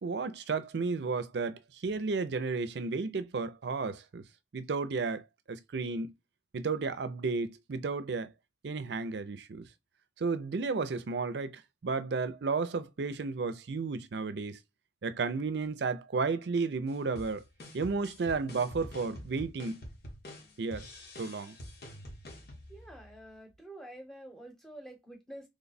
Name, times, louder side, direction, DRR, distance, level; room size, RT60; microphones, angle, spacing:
voice 1, 0.0-4.2 4.5-6.1 6.5-8.3 8.6-9.7 10.2-14.6 15.0-17.4 17.7-19.8 20.6-20.9 21.2-21.5, right 4 dB, 75° right, 0.5 m, -33 dB
sound 1, 16.9-23.4, left 1 dB, 60° left, 1.2 m, -47 dB
voice 2, 22.7-25.5, right 1 dB, 5° left, 0.9 m, -48 dB
3.2 x 2.2 x 4.0 m
head